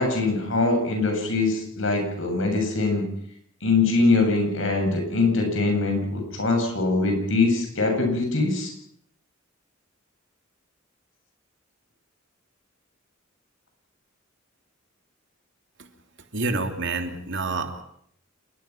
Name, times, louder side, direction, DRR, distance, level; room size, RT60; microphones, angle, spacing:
voice 1, 0.0-3.1 3.6-8.7, left 3 dB, 70° left, 3 dB, 7.9 m, -23 dB
voice 2, 16.3-17.8, right 3 dB, 65° right, 5 dB, 2.9 m, -28 dB
28.0 x 21.0 x 6.1 m, 0.69 s
head